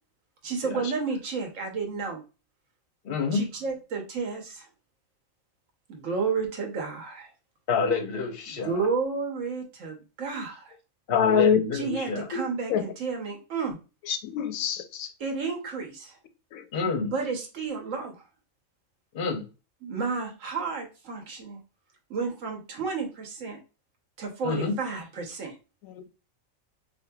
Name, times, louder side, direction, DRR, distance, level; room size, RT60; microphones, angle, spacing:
voice 1, 0.4-2.2 3.3-4.7 5.9-7.3 8.5-10.7 11.7-13.8 15.2-16.2 17.0-18.2 19.8-21.6 22.1-23.6 24.2-25.5, right 5 dB, 70° right, 1.2 m, -31 dB
voice 2, 3.0-3.4 7.7-8.7 11.1-12.3 16.7-17.1 19.1-19.4 24.4-24.7, left 4 dB, 50° left, 0.8 m, -28 dB
voice 3, 11.1-11.6 11.9-12.0 12.3-12.4 12.7-12.8 14.1-15.1 16.5-16.6 25.8-26.1, left 7 dB, 85° left, 1.0 m, -25 dB
4.2 x 2.7 x 2.2 m
omnidirectional pair, 1.4 m